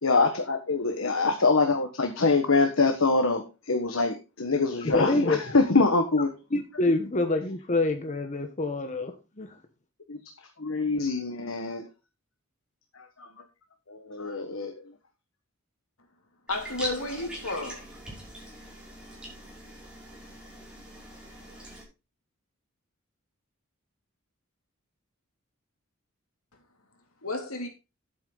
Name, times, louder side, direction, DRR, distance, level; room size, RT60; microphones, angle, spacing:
voice 1, 0.0-6.3 10.1-10.2 10.6-11.9 13.0-13.3 13.9-14.8, left 3 dB, 70° left, 1.4 m, -25 dB
voice 2, 4.9-5.5 6.5-9.6, left 2 dB, 35° left, 1.1 m, -27 dB
voice 3, 16.5-17.9 27.2-27.7, left 2 dB, 90° left, 2.8 m, -32 dB
sound 1, 16.5-21.8, equal, 5° right, 5.7 m, -42 dB
11.0 x 8.6 x 3.9 m
head